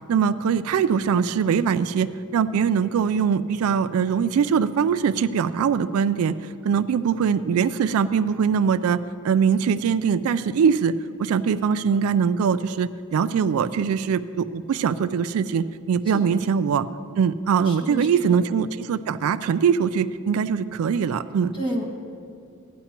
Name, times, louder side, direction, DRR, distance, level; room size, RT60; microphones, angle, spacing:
voice 1, 0.0-10.9 11.2-16.9 17.2-21.5, right 6 dB, 70° right, 13 dB, 0.3 m, -22 dB
voice 2, 16.1-16.4 17.7-18.3 21.5-21.8, equal, 25° left, -1 dB, 1.6 m, -31 dB
15.5 x 10.5 x 2.9 m, 2.3 s
head